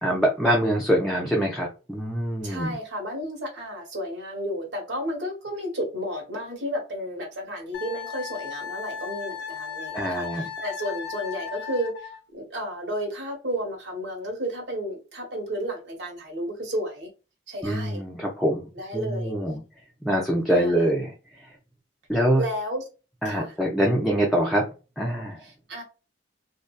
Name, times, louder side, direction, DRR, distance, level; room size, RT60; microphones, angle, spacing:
voice 1, 0.0-2.8 9.9-10.5 17.6-19.6 20.0-21.6 22.1-22.4 23.2-24.6 25.0-25.5, equal, ahead, 0.5 m, -24 dB
voice 2, 2.4-10.3 10.6-17.1 17.5-18.0 18.7-19.3 20.5-20.7 22.4-22.8 23.2-23.5 25.7-25.8, equal, 85° right, 1.3 m, -32 dB
Wind instrument woodwind instrument, 7.7-12.2, left 7 dB, 65° left, 0.6 m, -36 dB
2.6 x 2.2 x 2.2 m
head